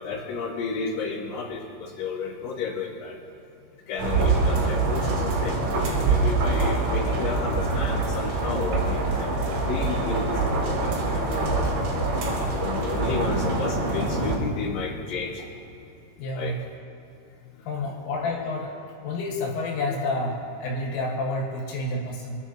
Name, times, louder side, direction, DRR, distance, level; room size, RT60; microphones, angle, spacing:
voice 1, 0.0-3.1 3.9-9.3 9.7-11.7 12.4-15.4 16.3-16.5 17.8-17.9, left 5 dB, 65° left, -6 dB, 4.1 m, -32 dB
sound 1, 4.0-14.4, right 3 dB, 70° right, 5.0 m, -25 dB
voice 2, 16.2-16.6 17.7-18.8 19.0-22.4, left 2 dB, 85° left, -2 dB, 4.2 m, -29 dB
28.0 x 10.0 x 2.9 m, 3.0 s
omnidirectional pair, 5.5 m